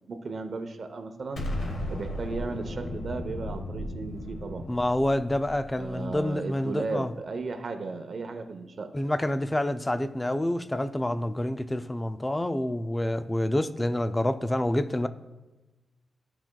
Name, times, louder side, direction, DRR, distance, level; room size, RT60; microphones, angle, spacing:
voice 1, 0.1-1.4 1.9-4.6 5.7-8.9, right 3 dB, 50° right, 0.7 m, -35 dB
Explosion, 1.4-6.5, left 1 dB, 70° left, 1.2 m, -36 dB
voice 2, 4.7-7.1 8.9-15.1, left 1 dB, 15° left, 0.3 m, -28 dB
13.5 x 5.9 x 2.3 m
wide cardioid pair, 130°, 0 cm